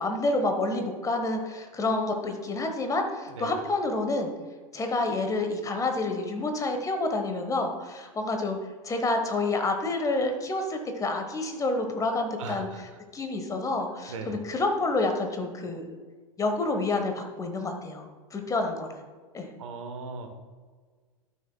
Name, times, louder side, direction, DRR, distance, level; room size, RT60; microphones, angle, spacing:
voice 1, 0.0-4.3 4.7-8.6 8.8-16.0 16.4-19.0 19.3-19.5, left 2 dB, 20° left, 5 dB, 1.2 m, -28 dB
voice 2, 12.4-12.8 14.1-14.4 19.6-20.3, right 4 dB, 65° right, 6 dB, 1.1 m, -38 dB
12.5 x 6.2 x 2.2 m, 1.5 s
figure-of-eight pair, 90°, 18 cm